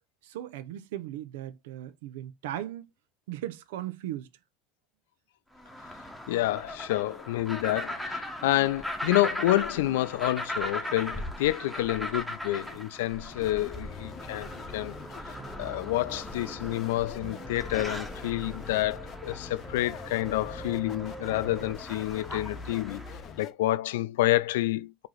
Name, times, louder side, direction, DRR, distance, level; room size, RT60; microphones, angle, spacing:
voice 1, 0.2-2.9 3.3-4.3, right 12 dB, 85° right, 0.6 m, -37 dB
sound 1, 5.6-23.3, left 1 dB, ahead, 1.3 m, -39 dB
voice 2, 6.3-15.0 15.6-23.0 23.4-25.1, left 16 dB, 85° left, 0.4 m, -28 dB
sound 2, 13.3-23.5, left 7 dB, 50° left, 0.7 m, -44 dB
sound 3, 13.8-21.7, right 3 dB, 20° right, 0.8 m, -46 dB
4.7 x 2.9 x 3.8 m
hypercardioid pair, 90°, 0 cm